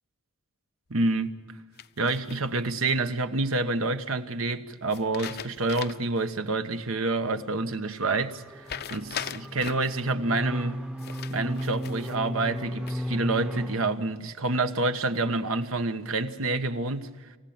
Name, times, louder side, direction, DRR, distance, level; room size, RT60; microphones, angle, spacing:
voice 1, 0.9-1.3 2.0-10.8 11.3-17.1, right 3 dB, 75° right, 1.2 m, -28 dB
sound 1, 1.8-2.7 4.9-6.2 6.6-6.7 8.7-10.0 11.0-12.2 12.6-13.2, left 8 dB, 50° left, 0.6 m, -39 dB
sound 2, 6.8-13.8, equal, 5° right, 0.8 m, -35 dB
28.0 x 15.0 x 8.8 m
head